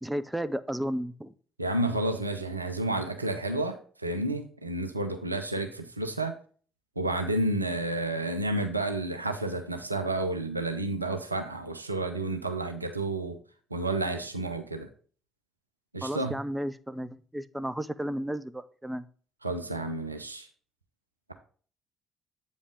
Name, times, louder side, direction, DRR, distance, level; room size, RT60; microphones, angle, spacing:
voice 1, 0.0-1.3 16.0-19.1, right 1 dB, 10° right, 0.5 m, -33 dB
voice 2, 1.6-6.3 7.0-13.4 13.7-14.9 15.9-16.4 19.4-20.5, right 2 dB, 85° right, 0.6 m, -31 dB
8.1 x 5.2 x 3.6 m
figure-of-eight pair, 50°, 0 cm